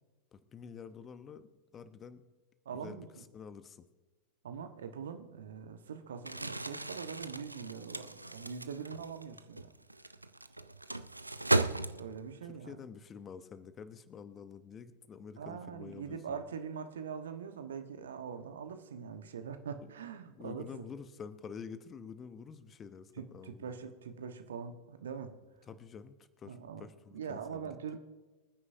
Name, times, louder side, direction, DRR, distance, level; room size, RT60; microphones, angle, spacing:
voice 1, 0.3-2.2 2.7-3.9 12.4-16.4 19.8-19.9 20.4-23.8 25.6-28.0, left 6 dB, 25° left, 12 dB, 0.9 m, -48 dB
voice 2, 2.6-3.1 4.4-9.7 12.0-12.8 15.4-20.7 23.2-25.3 26.4-26.9 27.1-28.0, right 6 dB, 65° right, 7 dB, 1.2 m, -43 dB
Crumpling crinkling, 6.2-12.4, right 2 dB, 85° right, 0.5 m, -36 dB
25.0 x 9.8 x 2.7 m, 1.2 s
figure-of-eight pair, 90°, 0 cm